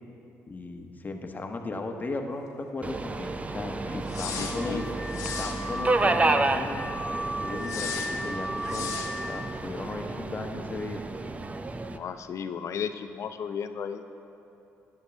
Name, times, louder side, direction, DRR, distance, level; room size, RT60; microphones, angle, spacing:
voice 1, 0.5-4.9 5.4-6.8 7.4-8.9 9.3-11.0, left 2 dB, 30° left, 4 dB, 1.1 m, -36 dB
Subway metro underground, 2.8-12.0, right 2 dB, 25° right, 0.5 m, -30 dB
sound 1, 4.1-4.6 5.1-5.6 7.6-8.1 8.6-9.1, left 7 dB, 75° left, 1.0 m, -36 dB
Car / Alarm, 4.1-9.6, equal, 10° left, 0.8 m, -36 dB
voice 2, 4.3-4.9 11.9-14.0, left 7 dB, 60° left, 9 dB, 0.6 m, -34 dB
13.0 x 10.5 x 3.4 m, 2.8 s
supercardioid pair, 65°, 6 cm